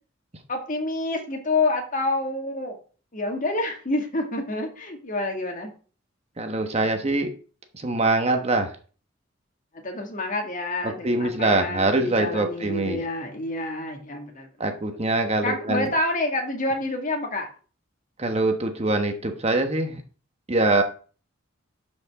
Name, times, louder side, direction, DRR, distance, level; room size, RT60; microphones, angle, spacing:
voice 1, 0.5-2.8 3.1-5.7 9.7-14.7 15.4-17.5, left 2 dB, 40° left, 3 dB, 2.0 m, -28 dB
voice 2, 6.4-7.3 7.7-8.7 10.8-13.0 14.6-15.9 18.2-20.0 20.5-20.8, right 2 dB, 30° right, 6 dB, 1.2 m, -23 dB
12.0 x 5.3 x 3.7 m, 0.39 s
head